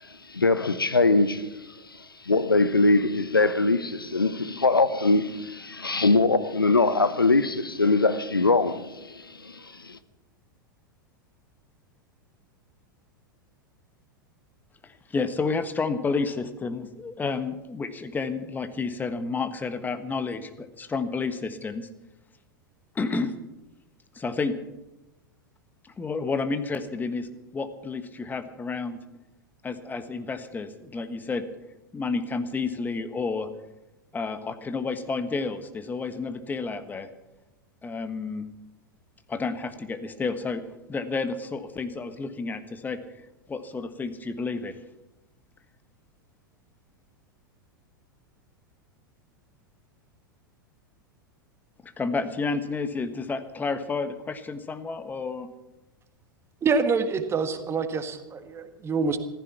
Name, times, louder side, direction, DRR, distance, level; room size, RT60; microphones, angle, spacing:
voice 1, 0.3-1.6 2.2-10.0, left 3 dB, 85° left, 0.8 m, -22 dB
voice 2, 14.8-21.9 22.9-23.3 24.1-24.5 25.8-27.3 27.5-29.0 29.6-31.4 31.9-33.5 34.1-37.1 37.8-38.4 39.3-40.6 40.9-44.8 51.8-55.5, left 4 dB, 15° left, 1.4 m, -30 dB
voice 3, 56.6-59.2, right 4 dB, 20° right, 1.6 m, -26 dB
15.0 x 15.0 x 6.0 m
figure-of-eight pair, 90°, 11 cm